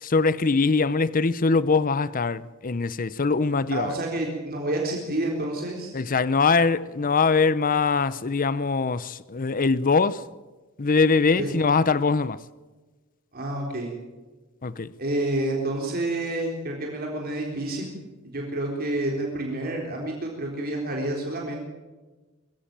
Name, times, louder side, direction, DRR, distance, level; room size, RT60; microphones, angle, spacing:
voice 1, 0.0-4.0 5.9-10.2 10.8-12.4 14.6-14.9, left 4 dB, 40° left, 0.7 m, -22 dB
voice 2, 3.7-6.0 11.3-11.5 13.3-13.9 15.0-18.0 18.3-21.6, right 1 dB, 45° right, 3.9 m, -29 dB
23.5 x 16.0 x 9.0 m
head